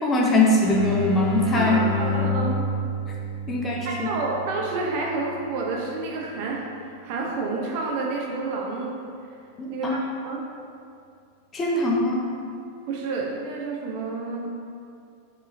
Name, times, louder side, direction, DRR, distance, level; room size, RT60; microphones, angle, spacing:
voice 1, 0.0-1.8 3.5-4.1 9.6-10.0 11.5-12.2, left 2 dB, 25° left, -2 dB, 0.5 m, -22 dB
sound 1, 0.6-6.1, left 1 dB, 10° right, 1.3 m, -30 dB
voice 2, 1.5-2.7 3.8-6.7 7.0-8.9 9.7-10.4 12.9-14.5, right 3 dB, 55° right, -1 dB, 0.4 m, -29 dB
2.8 x 2.7 x 2.5 m, 2.4 s
hypercardioid pair, 110°, 0 cm